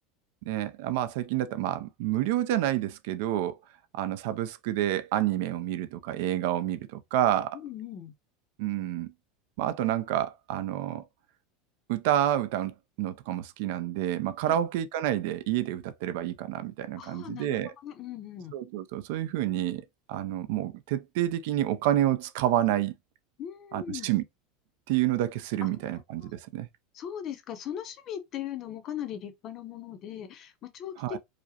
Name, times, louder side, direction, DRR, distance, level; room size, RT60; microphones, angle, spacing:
voice 1, 0.5-3.6 3.9-7.6 8.6-9.1 9.6-11.0 11.9-17.7 18.5-19.8 20.1-22.9 23.7-24.2 24.9-26.7 31.0-31.2, right 12 dB, 60° right, 0.4 m, -29 dB
voice 2, 7.5-8.1 14.4-14.6 17.0-18.5 23.4-24.2 25.6-25.7 26.2-26.3 26.9-31.2, left 10 dB, 30° left, 0.6 m, -39 dB
4.8 x 2.1 x 2.7 m
supercardioid pair, 175°, 0 cm